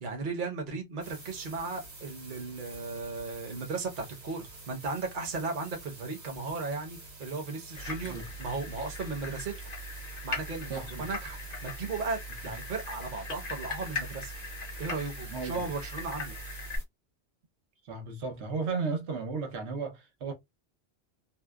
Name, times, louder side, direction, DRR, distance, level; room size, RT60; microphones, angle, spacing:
voice 1, 0.0-9.5 10.2-10.7 11.0-14.3 14.8-16.3, right 4 dB, 50° right, 0.9 m, -36 dB
sound 1, 1.0-16.8, right 2 dB, 70° right, 1.3 m, -49 dB
sound 2, 7.7-16.8, left 2 dB, 45° left, 0.7 m, -40 dB
voice 2, 10.7-11.1 12.4-12.5 15.3-15.7 17.8-20.3, right 4 dB, 90° right, 1.0 m, -34 dB
2.8 x 2.1 x 2.2 m
omnidirectional pair, 1.1 m